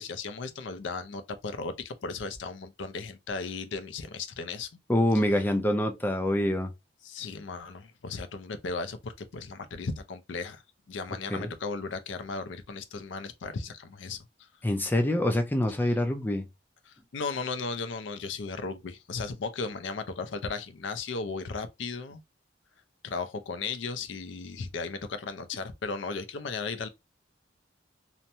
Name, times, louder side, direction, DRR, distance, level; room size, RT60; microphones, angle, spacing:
voice 1, 0.0-4.7 7.0-10.6 10.9-14.5 16.9-22.2 23.0-26.9, left 4 dB, 80° left, 0.5 m, -36 dB
voice 2, 4.9-6.7 11.3-11.5 14.6-16.4, left 1 dB, 10° left, 0.4 m, -25 dB
2.9 x 2.1 x 2.6 m
head